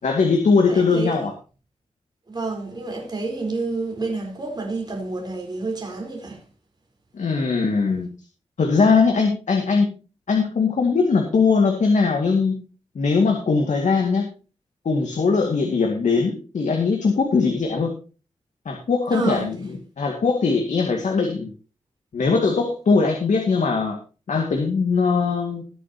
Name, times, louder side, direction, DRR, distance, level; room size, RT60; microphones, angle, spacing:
voice 1, 0.0-1.3 7.1-8.1 8.6-9.9 10.3-12.6 13.0-14.3 14.9-17.9 18.7-19.6 20.0-21.5 22.1-24.0 24.3-25.6, left 4 dB, 85° left, 2.2 m, -20 dB
voice 2, 0.6-1.3 2.3-6.4 19.1-19.5, right 3 dB, 35° right, 4.4 m, -29 dB
20.5 x 7.4 x 2.9 m
wide cardioid pair, 135°, 12 cm